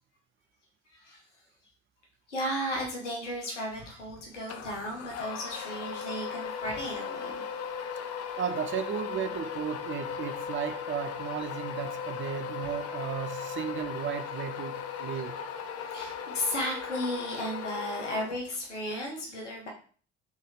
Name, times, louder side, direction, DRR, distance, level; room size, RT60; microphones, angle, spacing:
voice 1, 0.9-1.2 2.3-7.4 7.9-8.2 12.6-12.7 15.9-19.7, equal, 85° left, 1.2 m, -35 dB
sound 1, 4.5-18.8, left 7 dB, 45° left, 0.6 m, -37 dB
voice 2, 8.4-15.3, right 8 dB, 35° right, 0.6 m, -34 dB
4.0 x 3.6 x 3.6 m
figure-of-eight pair, 50°, 35 cm